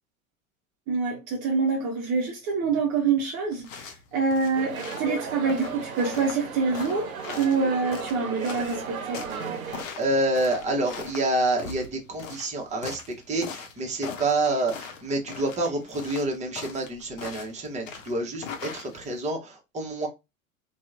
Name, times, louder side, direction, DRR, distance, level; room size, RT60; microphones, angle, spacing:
voice 1, 0.9-9.5, right 4 dB, 40° right, 0.8 m, -26 dB
sound 1, 3.5-19.3, left 6 dB, 65° left, 0.7 m, -41 dB
sound 2, 4.5-9.8, right 6 dB, 75° right, 0.8 m, -35 dB
voice 2, 9.6-13.0 13.3-20.1, right 2 dB, 15° right, 0.9 m, -28 dB
2.8 x 2.3 x 2.5 m
figure-of-eight pair, 80°, 42 cm